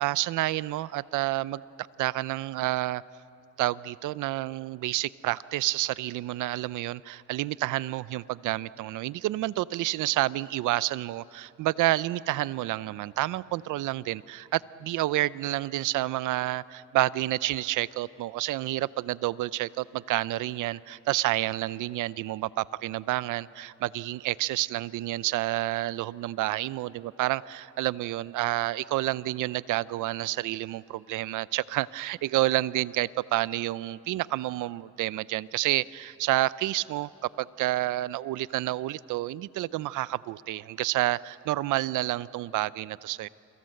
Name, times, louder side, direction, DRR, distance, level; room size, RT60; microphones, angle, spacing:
voice 1, 0.0-1.6 2.0-3.0 3.6-37.1 37.4-43.3, right 16 dB, 85° right, 19 dB, 0.6 m, -29 dB
29.0 x 23.0 x 7.8 m, 2.5 s
cardioid pair, 90°, 30 cm